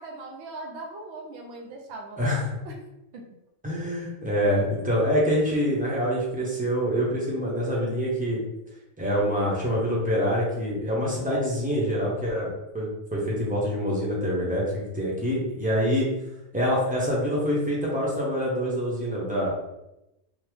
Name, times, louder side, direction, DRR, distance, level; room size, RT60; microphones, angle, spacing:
voice 1, 0.0-2.8 3.1-3.2, right 2 dB, 70° right, 1 dB, 0.8 m, -40 dB
voice 2, 2.2-2.6 3.6-8.4 9.0-16.1 16.5-19.5, equal, 10° right, -5 dB, 0.7 m, -26 dB
3.6 x 2.0 x 3.1 m, 0.90 s
omnidirectional pair, 1.3 m